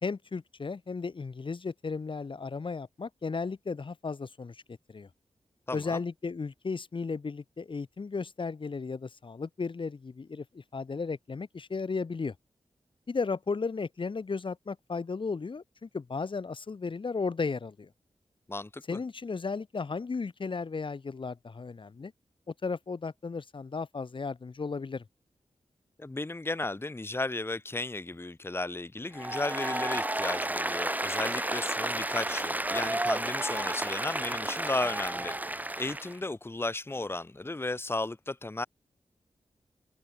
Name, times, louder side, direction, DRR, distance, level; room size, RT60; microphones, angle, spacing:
voice 1, 0.0-5.1 5.7-12.3 13.1-17.9 18.9-22.1 22.5-25.0, left 4 dB, 50° left, 1.8 m, -35 dB
voice 2, 5.7-6.0 18.5-19.0 26.0-38.7, left 2 dB, 20° left, 1.5 m, -34 dB
Applause, 29.1-36.2, right 1 dB, 15° right, 2.1 m, -32 dB
wide cardioid pair, 80°, 11 cm